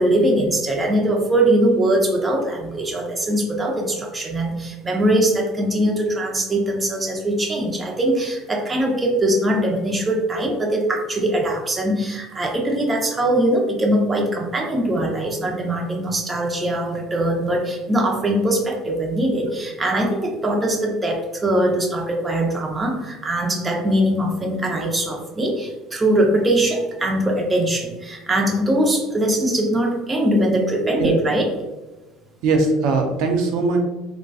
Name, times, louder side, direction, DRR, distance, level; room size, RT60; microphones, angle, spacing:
voice 1, 0.0-31.5, right 1 dB, 25° right, 0 dB, 0.7 m, -21 dB
voice 2, 32.4-33.8, right 3 dB, 70° right, 4 dB, 0.6 m, -20 dB
3.6 x 2.5 x 2.3 m, 1.1 s
supercardioid pair, 100°, 0 cm